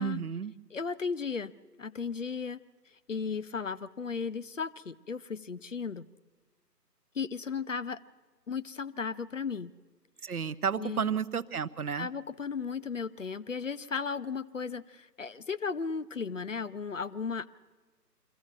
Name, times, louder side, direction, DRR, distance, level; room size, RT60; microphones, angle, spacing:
voice 1, 0.0-0.5 10.2-12.1, right 7 dB, 60° right, 16 dB, 0.7 m, -32 dB
voice 2, 0.7-1.5 1.8-2.6 2.9-6.1 7.1-8.0 8.5-9.7 10.8-11.1 12.0-17.5, left 5 dB, 50° left, 15 dB, 0.5 m, -35 dB
24.0 x 15.0 x 7.3 m, 1.3 s
figure-of-eight pair, 155°, 49 cm